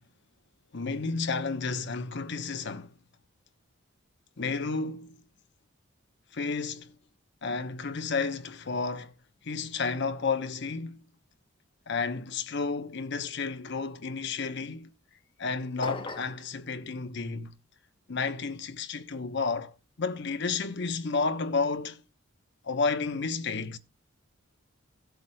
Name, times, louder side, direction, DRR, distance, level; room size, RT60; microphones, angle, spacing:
voice 1, 0.7-3.0 4.4-5.2 6.3-6.9 7.4-9.1 9.4-11.0 11.9-14.9 15.4-17.6 18.1-22.0 22.6-23.8, left 4 dB, 55° left, 0.9 m, -31 dB
sound 1, 15.8-16.4, left 3 dB, 25° left, 0.8 m, -37 dB
16.5 x 8.0 x 2.2 m
head